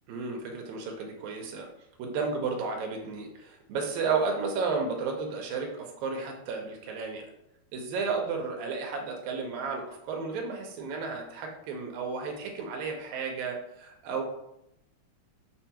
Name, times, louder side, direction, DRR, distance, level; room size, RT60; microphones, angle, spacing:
voice 1, 0.1-1.7 2.0-7.2 7.7-14.2, right 4 dB, 85° right, 2 dB, 2.0 m, -33 dB
5.6 x 2.3 x 2.8 m, 0.81 s
omnidirectional pair, 3.3 m